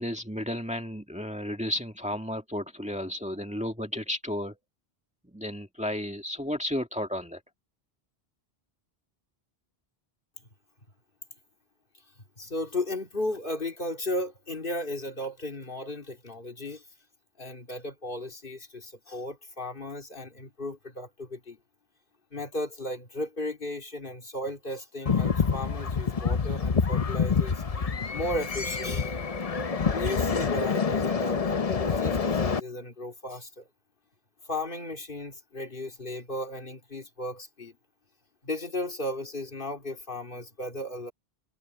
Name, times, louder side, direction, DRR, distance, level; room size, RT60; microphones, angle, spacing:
voice 1, 0.0-4.6 5.2-7.4, left 1 dB, 5° right, 2.2 m, -33 dB
voice 2, 12.4-16.9 17.4-21.6 22.3-27.6 28.1-29.2 29.9-33.7 34.5-37.8 38.4-41.1, left 1 dB, 55° left, 2.7 m, -35 dB
sound 1, 25.1-32.6, left 5 dB, 40° left, 0.9 m, -27 dB
omnidirectional pair, 1.0 m